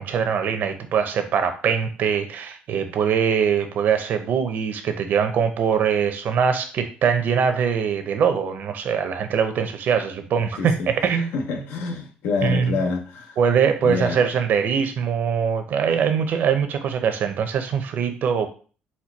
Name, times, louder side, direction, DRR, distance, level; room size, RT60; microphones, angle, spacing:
voice 1, 0.0-11.3 12.4-12.8 13.4-18.5, right 7 dB, 60° right, 0.7 m, -22 dB
voice 2, 10.5-13.4 13.8-14.2, left 4 dB, 85° left, 0.8 m, -27 dB
4.3 x 2.3 x 4.5 m
cardioid pair, 115°, 3 cm